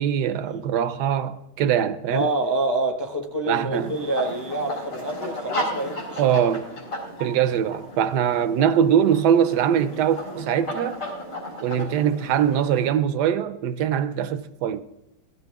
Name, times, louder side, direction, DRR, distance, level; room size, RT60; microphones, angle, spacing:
voice 1, 0.0-2.3 3.5-4.0 6.2-6.6 7.2-11.0 11.6-14.8, right 9 dB, 75° right, 1.2 m, -22 dB
voice 2, 2.1-6.2, right 2 dB, 15° left, 0.6 m, -27 dB
sound 1, 3.7-12.9, equal, 85° left, 4.2 m, -35 dB
16.5 x 15.0 x 3.5 m
omnidirectional pair, 1.9 m